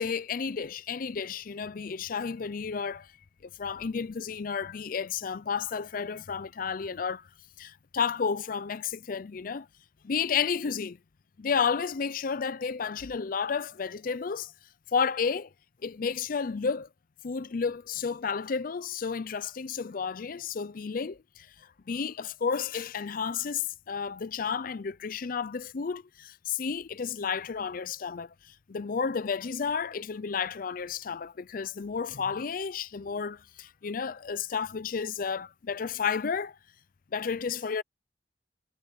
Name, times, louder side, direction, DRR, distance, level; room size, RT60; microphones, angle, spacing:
voice 1, 0.0-3.1 3.6-7.3 7.6-9.7 10.0-11.0 11.4-14.5 14.9-15.5 15.8-16.9 17.2-36.6 37.1-37.8, left 6 dB, 50° left, 0.5 m, -32 dB
head